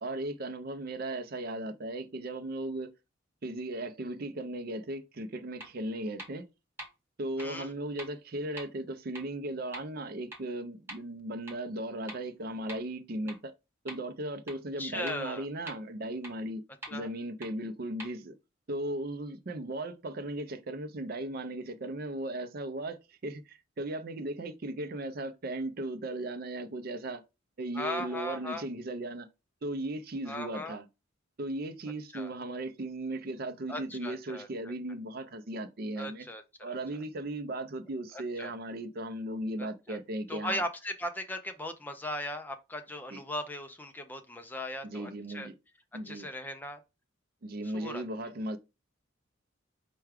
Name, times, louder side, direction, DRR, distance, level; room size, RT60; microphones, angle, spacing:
voice 1, 0.0-2.9 3.4-6.5 7.2-13.5 13.8-16.6 16.9-18.3 18.7-27.2 27.6-29.3 29.6-30.9 31.4-36.3 36.6-40.6 43.1-43.2 44.8-45.5 45.9-46.3 47.4-48.6, right 1 dB, 50° right, 0.5 m, -37 dB
sound 1, 5.6-5.7 6.2-6.3 6.8-6.9 7.4-7.5 8.0-8.1 8.6-8.7 9.2-9.3 9.7-9.8 10.3-10.4 10.9-11.0 11.5-11.6 12.1-12.2 12.7-12.8 13.3-13.4 13.9-14.0 14.5-14.6 15.1-15.2 15.7-15.8 16.2-16.3 16.8-16.9 17.4-17.5 18.0-18.1, right 1 dB, 10° right, 1.1 m, -42 dB
voice 2, 7.4-7.7 14.8-15.5 16.9-17.1 27.7-28.6 30.3-30.8 32.1-32.3 33.7-34.7 36.0-36.8 38.1-38.5 39.9-40.0 40.3-45.5 46.0-46.8 47.7-48.0, left 1 dB, 10° left, 0.4 m, -38 dB
4.6 x 2.3 x 4.8 m
head